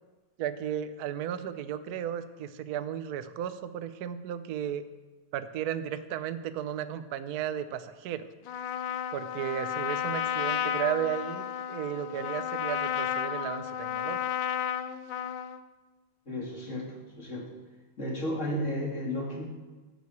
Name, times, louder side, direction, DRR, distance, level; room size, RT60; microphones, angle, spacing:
voice 1, 0.4-4.9 5.3-8.2 9.1-14.2, right 10 dB, 60° right, 11 dB, 1.1 m, -34 dB
Trumpet, 8.5-15.6, left 10 dB, 80° left, 1.5 m, -32 dB
voice 2, 16.3-17.5 18.0-19.4, left 1 dB, 35° left, -1 dB, 3.0 m, -33 dB
12.5 x 8.6 x 8.0 m, 1.2 s
omnidirectional pair, 2.2 m